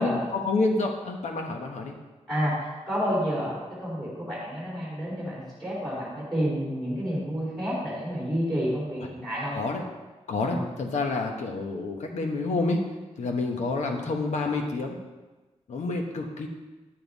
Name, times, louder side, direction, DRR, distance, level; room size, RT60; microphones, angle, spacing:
voice 1, 0.0-2.0 9.5-9.9 10.3-12.8 13.2-15.0 15.7-16.5, left 3 dB, 75° left, 2 dB, 1.1 m, -28 dB
voice 2, 2.3-9.6 10.4-10.6, equal, ahead, -7 dB, 3.3 m, -29 dB
9.7 x 7.2 x 4.1 m, 1.2 s
wide cardioid pair, 170°, 12 cm